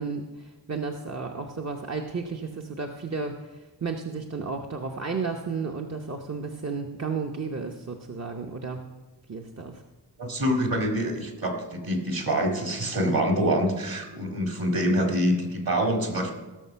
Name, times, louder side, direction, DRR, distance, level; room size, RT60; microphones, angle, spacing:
voice 1, 0.0-8.8 9.3-9.8, right 4 dB, 40° right, 2 dB, 0.8 m, -33 dB
voice 2, 10.2-16.3, equal, 55° right, 3 dB, 2.3 m, -25 dB
16.5 x 6.7 x 5.7 m, 1.2 s
wide cardioid pair, 90°, 42 cm